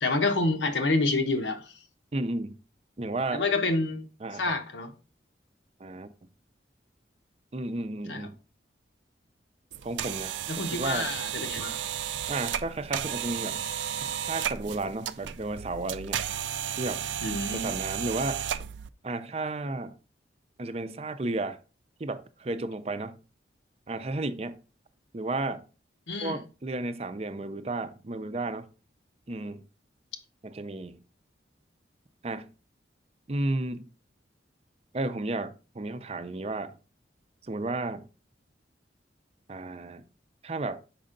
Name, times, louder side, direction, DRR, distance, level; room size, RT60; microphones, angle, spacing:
voice 1, 0.0-1.6 3.3-4.1 4.4-4.9 8.1-8.3 10.5-11.8 17.2-17.7 26.1-26.4, left 2 dB, 85° left, 1.0 m, -28 dB
voice 2, 2.1-2.6 3.0-3.4 4.2-4.5 5.8-6.1 7.5-8.4 9.8-11.1 12.3-13.7 14.3-16.2 16.8-17.0 17.5-18.4 19.0-19.9 20.6-21.6 22.0-23.2 23.9-24.6 25.1-25.6 26.2-28.7 29.3-29.6 30.4-31.0 32.2-32.5 33.3-33.9 34.9-36.8 37.4-38.1 39.5-40.0 40.4-40.8, right 2 dB, 35° right, 0.5 m, -33 dB
sound 1, 9.7-18.9, right 9 dB, 85° right, 0.4 m, -33 dB
6.1 x 5.4 x 3.8 m
head